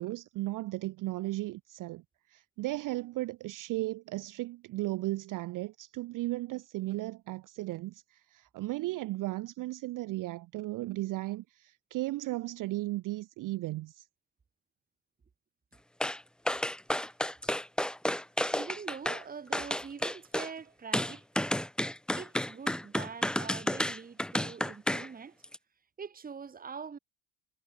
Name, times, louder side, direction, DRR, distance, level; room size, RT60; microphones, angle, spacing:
voice 1, 0.0-14.1, right 18 dB, 45° right, 0.6 m, -35 dB
sound 1, 16.0-16.2 16.5-19.2 19.5-20.5 20.9-25.1 25.4-25.6, left 1 dB, ahead, 0.7 m, -31 dB
voice 2, 18.4-21.5 22.1-25.4 26.0-27.0, right 6 dB, 20° right, 1.5 m, -44 dB
supercardioid pair, 90°, 47 cm